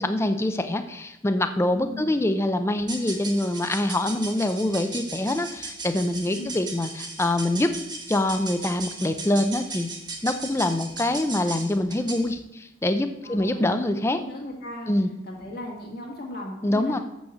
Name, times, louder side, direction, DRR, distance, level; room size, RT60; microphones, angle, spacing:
voice 1, 0.0-7.7 8.1-9.9 10.2-14.2 14.9-15.1 16.6-17.0, left 1 dB, 15° left, 8 dB, 0.4 m, -25 dB
voice 2, 1.7-2.1 6.3-6.5 13.2-13.7 14.1-14.9 15.3-17.0, left 1 dB, 50° left, -1 dB, 1.9 m, -37 dB
sound 1, 2.8-12.3, right 3 dB, 20° right, 1.2 m, -37 dB
6.4 x 6.1 x 7.1 m, 0.89 s
head